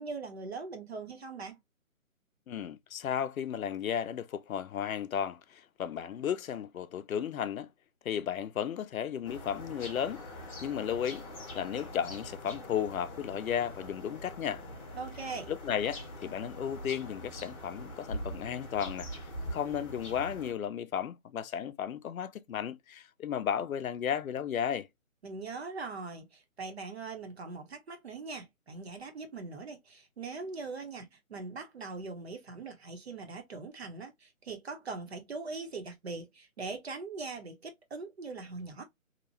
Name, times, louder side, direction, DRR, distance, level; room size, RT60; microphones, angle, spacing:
voice 1, 0.0-1.6 14.9-15.5 25.2-38.8, right 4 dB, 50° right, 0.8 m, -41 dB
voice 2, 2.5-7.7 8.0-10.2 10.6-11.2 11.5-14.6 15.5-19.1 19.5-24.9, left 9 dB, 75° left, 0.5 m, -34 dB
sound 1, 9.2-20.5, equal, 25° left, 0.8 m, -43 dB
2.8 x 2.0 x 2.6 m
hypercardioid pair, 160°, 42 cm